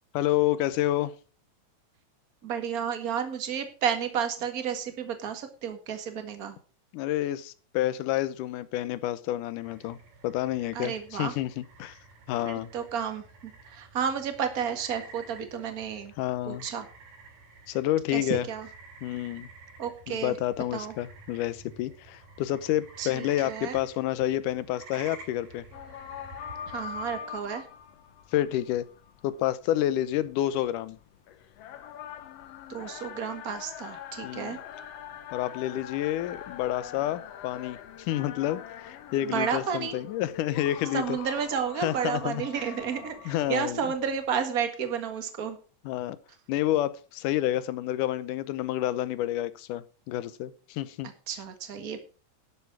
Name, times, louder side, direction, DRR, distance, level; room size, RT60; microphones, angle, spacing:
voice 1, 0.1-1.2 6.9-10.0 10.2-12.0 12.3-12.7 16.2-16.7 17.7-18.5 19.0-19.5 20.1-25.7 28.3-28.9 29.2-31.0 34.2-34.6 35.3-41.2 41.8-42.4 43.3-43.8 45.9-46.2 46.5-51.1, left 13 dB, 85° left, 16 dB, 2.3 m, -29 dB
voice 2, 2.4-6.6 10.7-11.3 12.4-16.1 16.5-16.9 18.1-18.7 19.8-20.3 20.7-20.9 23.0-23.8 26.7-27.7 32.7-34.6 39.2-39.9 40.9-45.6 51.3-52.0, right 7 dB, 35° right, 7 dB, 1.7 m, -32 dB
sound 1, 9.6-27.2, right 3 dB, 80° right, 5.2 m, -51 dB
sound 2, 25.7-44.3, left 9 dB, 65° left, 1.7 m, -43 dB
12.0 x 7.2 x 6.1 m, 0.37 s
omnidirectional pair, 3.6 m